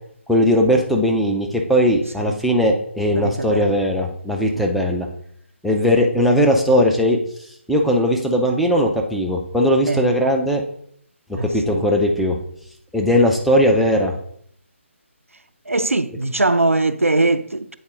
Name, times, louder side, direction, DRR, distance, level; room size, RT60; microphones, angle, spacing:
voice 1, 0.3-5.1 5.6-7.2 7.7-10.6 11.4-12.4 12.9-14.1, equal, ahead, 0.4 m, -18 dB
voice 2, 3.1-3.8 4.5-4.7 9.9-10.1 11.3-11.9 15.7-17.8, right 2 dB, 85° right, 0.4 m, -21 dB
8.6 x 4.0 x 3.6 m
figure-of-eight pair, 145°, 7 cm